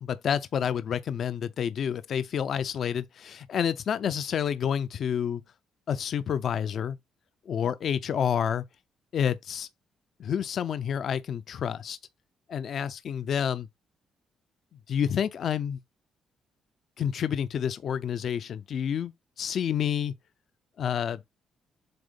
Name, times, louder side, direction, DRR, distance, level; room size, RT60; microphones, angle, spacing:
voice 1, 0.0-5.4 5.9-7.0 7.5-8.6 9.1-9.7 10.2-12.0 12.5-13.7 14.9-15.8 17.0-20.1 20.8-21.2, left 8 dB, 60° left, 0.5 m, -29 dB
7.7 x 2.7 x 5.1 m
cardioid pair, 90°, 0 cm